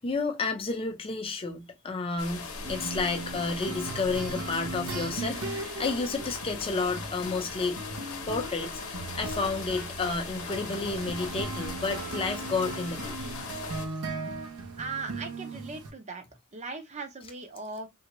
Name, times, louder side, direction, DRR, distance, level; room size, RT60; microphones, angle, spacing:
voice 1, 0.0-7.8 8.3-13.1 13.5-13.6, left 3 dB, 25° left, 0.5 m, -31 dB
sound 1, 2.2-13.9, left 4 dB, 65° left, 0.8 m, -39 dB
sound 2, 2.6-15.9, right 2 dB, 80° right, 0.8 m, -38 dB
voice 2, 14.8-16.2 16.5-17.9, right 4 dB, 30° right, 0.6 m, -38 dB
3.3 x 2.7 x 2.9 m
head